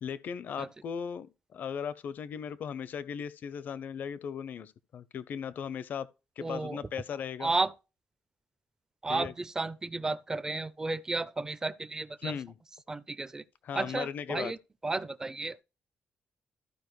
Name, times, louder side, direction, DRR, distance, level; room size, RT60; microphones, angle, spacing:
voice 1, 0.0-6.1 6.4-7.5 9.1-9.3 12.2-12.5 13.6-14.5, left 7 dB, 55° left, 0.6 m, -37 dB
voice 2, 6.4-6.8 7.4-7.7 9.0-12.3 12.9-13.4 13.7-14.6 14.8-15.6, right 3 dB, 15° right, 0.5 m, -33 dB
14.0 x 4.9 x 3.1 m
cardioid pair, 140°, 4 cm